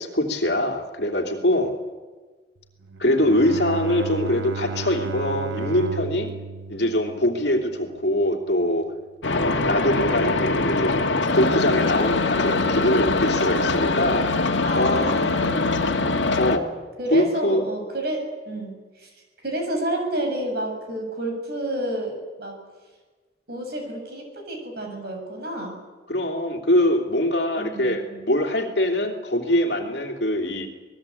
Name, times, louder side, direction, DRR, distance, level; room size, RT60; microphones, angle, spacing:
voice 1, 0.0-1.7 3.0-6.3 6.7-8.9 9.3-11.1 11.3-14.5 14.7-15.1 16.4-16.7 17.1-17.6 26.1-30.7, left 1 dB, 60° left, 3 dB, 3.1 m, -23 dB
Bowed string instrument, 2.8-8.1, right 4 dB, 85° right, 0.9 m, -33 dB
sound 1, 9.2-16.6, left 3 dB, 85° left, 1.8 m, -23 dB
voice 2, 14.6-16.1 17.0-19.1 19.4-22.6 23.5-25.8 27.6-28.3, right 1 dB, 55° right, 3 dB, 7.0 m, -30 dB
27.0 x 19.5 x 8.6 m, 1.4 s
head